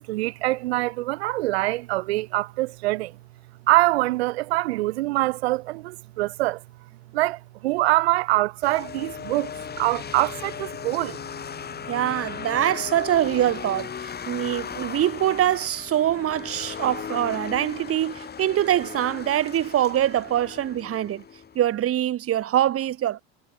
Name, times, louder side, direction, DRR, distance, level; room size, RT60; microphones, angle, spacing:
voice 1, 0.0-3.1 3.7-6.6 7.1-11.2, right 19 dB, 85° right, 3.9 m, -24 dB
sound 1, 8.6-21.7, left 7 dB, 30° left, 7.0 m, -37 dB
voice 2, 11.9-21.2 21.5-23.2, right 12 dB, 45° right, 6.6 m, -24 dB
supercardioid pair, 100°, 31 cm